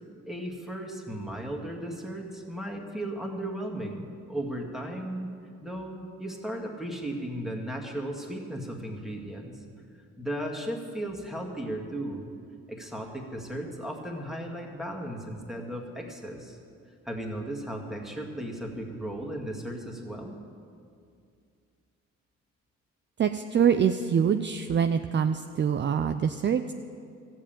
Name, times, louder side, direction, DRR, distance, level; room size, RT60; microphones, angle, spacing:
voice 1, 0.3-5.3 5.6-9.6 10.2-12.3 12.7-16.6 17.0-20.4, right 1 dB, ahead, 0 dB, 2.1 m, -36 dB
voice 2, 23.2-26.7, right 7 dB, 40° right, 8 dB, 0.5 m, -25 dB
14.0 x 7.5 x 8.9 m, 2.4 s
cardioid pair, 90°, 30 cm